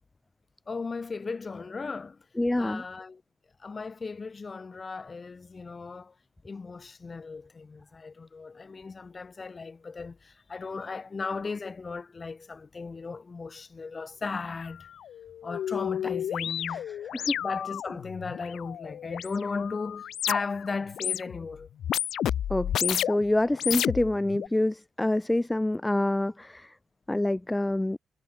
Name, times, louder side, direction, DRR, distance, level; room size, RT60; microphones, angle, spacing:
voice 1, 0.7-2.2 2.6-3.2 3.6-6.1 6.4-14.9 15.4-21.7, left 4 dB, 25° left, 3.9 m, -36 dB
voice 2, 2.4-2.8 16.7-16.8 17.1-17.4 22.5-26.8 27.1-28.0, left 1 dB, 10° left, 1.2 m, -26 dB
sound 1, 14.6-14.7 15.0-20.7 20.9-21.5 21.8-23.2 23.6-24.5, left 10 dB, 75° left, 3.1 m, -32 dB
wide cardioid pair, 150°, 0 cm